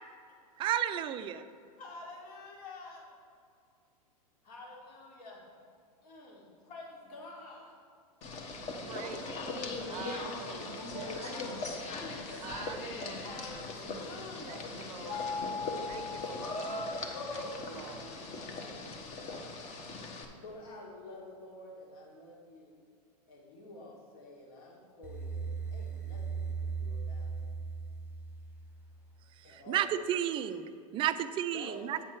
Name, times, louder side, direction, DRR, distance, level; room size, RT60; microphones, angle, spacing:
voice 1, 0.6-1.4 29.5-32.0, right 11 dB, 25° right, 11 dB, 0.3 m, -32 dB
voice 2, 1.8-3.1 4.4-5.5 6.0-7.7 8.5-10.0 10.4-11.0 11.3-12.5 13.2-15.7 16.1-17.0 17.5-18.5 18.7-19.4 20.4-22.8 23.3-27.5 29.4-29.9 31.5-32.0, left 2 dB, 65° left, -2 dB, 2.0 m, -50 dB
sound 1, 8.2-20.2, left 3 dB, 35° left, 1.0 m, -39 dB
voice 3, 8.9-9.4 9.9-11.5 12.3-13.4 14.5-15.3 15.9-18.1, right 8 dB, 70° right, 10 dB, 0.5 m, -46 dB
sound 2, 15.1-17.9, left 5 dB, 85° left, 0.5 m, -40 dB
sound 3, 25.0-29.1, right 5 dB, 10° right, 1.0 m, -38 dB
8.4 x 4.3 x 6.1 m, 2.3 s
hypercardioid pair, 120°, 20 cm